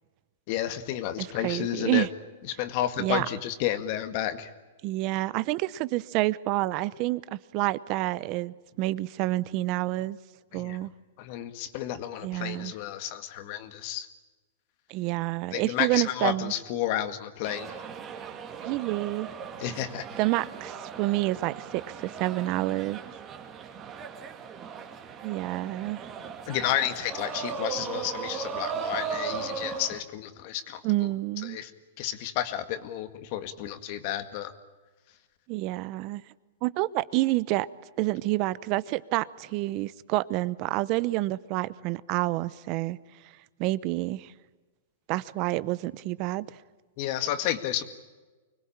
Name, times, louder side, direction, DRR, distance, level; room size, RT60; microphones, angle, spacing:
voice 1, 0.5-2.1 2.5-4.5 10.5-10.8 11.2-14.1 15.5-17.8 19.6-20.1 26.5-30.8 31.4-31.7 32.0-34.5 47.0-47.8, left 11 dB, 45° left, 2.0 m, -31 dB
voice 2, 1.2-2.1 3.0-3.3 4.8-10.2 10.5-10.9 12.2-12.7 14.9-16.5 18.6-19.3 20.2-23.0 25.2-26.1 30.8-31.6 35.5-36.2 36.6-37.7 38.0-43.0 43.6-44.3 45.1-46.6, right 18 dB, 35° right, 0.8 m, -28 dB
sound 1, 17.4-30.0, right 6 dB, 20° right, 2.5 m, -37 dB
25.0 x 21.5 x 8.8 m
hypercardioid pair, 150°, 0 cm